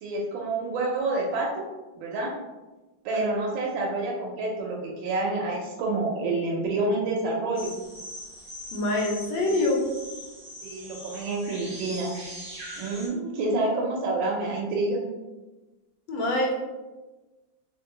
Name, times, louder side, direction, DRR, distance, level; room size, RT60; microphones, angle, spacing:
voice 1, 0.0-1.6 2.0-2.3 3.0-7.7 10.6-12.1 12.8-15.0, right 2 dB, 80° right, -2 dB, 1.4 m, -28 dB
sound 1, 7.5-13.1, equal, 35° right, 0.9 m, -41 dB
voice 2, 8.7-9.8 16.1-16.5, left 2 dB, 75° left, 0 dB, 1.5 m, -25 dB
3.6 x 2.3 x 3.8 m, 1.2 s
omnidirectional pair, 2.1 m